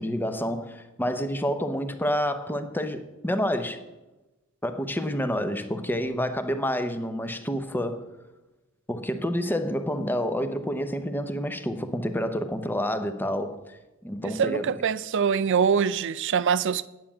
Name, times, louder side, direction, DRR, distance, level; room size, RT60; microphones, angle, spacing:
voice 1, 0.0-3.8 4.6-8.1 8.9-14.7, equal, 10° left, 0.7 m, -28 dB
voice 2, 14.2-16.9, right 6 dB, 60° right, 0.4 m, -24 dB
9.4 x 7.3 x 8.6 m
head